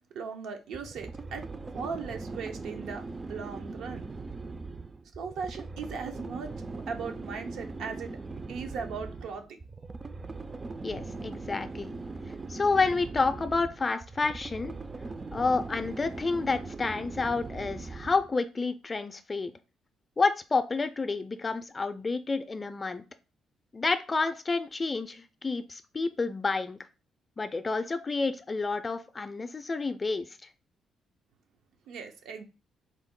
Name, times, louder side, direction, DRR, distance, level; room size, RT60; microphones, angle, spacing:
voice 1, 0.1-3.0 3.3-4.1 5.2-8.2 8.5-9.6 31.9-32.4, right 5 dB, 80° right, 0.6 m, -38 dB
sound 1, 0.7-18.4, right 3 dB, 30° right, 0.4 m, -40 dB
voice 2, 10.8-12.0 12.5-14.8 15.3-19.5 20.2-23.0 23.7-26.8 27.4-30.3, left 4 dB, 30° left, 0.4 m, -29 dB
3.9 x 2.1 x 3.6 m
supercardioid pair, 70°, 0 cm